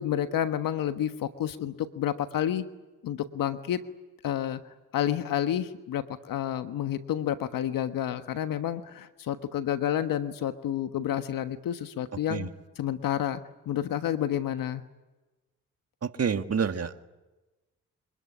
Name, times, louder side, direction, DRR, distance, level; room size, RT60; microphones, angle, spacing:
voice 1, 0.0-2.6 3.0-3.8 4.2-4.6 4.9-12.5 12.8-14.8, left 10 dB, 75° left, 10 dB, 1.4 m, -30 dB
voice 2, 16.0-17.0, right 6 dB, 45° right, 9 dB, 1.8 m, -28 dB
25.0 x 20.0 x 10.0 m, 1.1 s
supercardioid pair, 50°, 34 cm